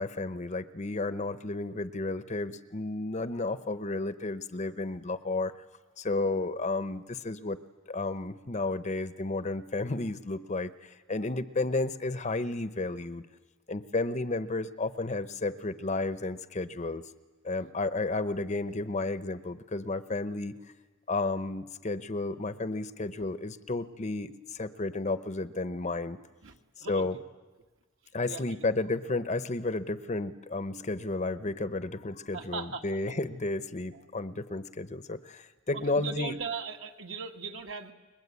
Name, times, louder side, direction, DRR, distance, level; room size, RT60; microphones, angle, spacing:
voice 1, 0.0-5.5 6.0-7.6 7.9-13.2 13.7-17.0 17.4-20.6 21.1-26.2 26.8-27.2 28.1-36.4, left 2 dB, 35° left, 12 dB, 0.8 m, -32 dB
voice 2, 26.4-27.0 28.3-28.6 32.3-32.8 33.9-34.0 35.7-37.9, right 4 dB, 65° right, 4 dB, 1.9 m, -38 dB
30.0 x 22.0 x 8.3 m, 1.2 s
head